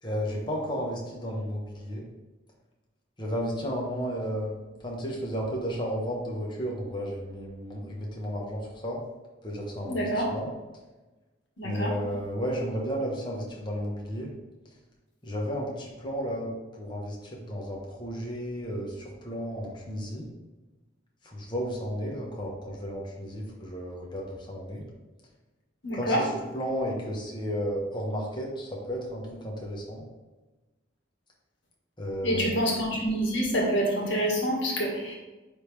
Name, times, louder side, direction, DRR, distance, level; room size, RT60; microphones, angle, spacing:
voice 1, 0.0-2.0 3.2-4.5 4.8-9.0 9.4-10.5 11.6-14.3 15.2-16.5 16.8-20.3 21.2-24.8 25.9-30.1 32.0-32.6, equal, 25° left, -2 dB, 1.2 m, -33 dB
voice 2, 9.9-10.3 11.6-11.9 25.8-26.2 32.2-35.1, equal, 75° left, -2 dB, 1.8 m, -27 dB
9.8 x 3.5 x 3.3 m, 1.2 s
head